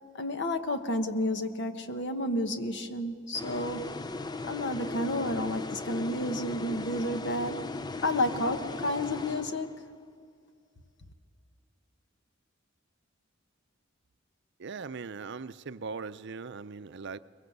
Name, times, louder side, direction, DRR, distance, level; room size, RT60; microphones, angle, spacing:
voice 1, 0.1-4.0 4.4-7.6 8.0-9.8, left 1 dB, 60° left, 1.3 m, -31 dB
sound 1, 3.3-10.0, left 3 dB, 20° left, 0.5 m, -38 dB
voice 2, 14.6-17.2, right 4 dB, 60° right, 0.6 m, -39 dB
22.0 x 22.0 x 8.0 m
head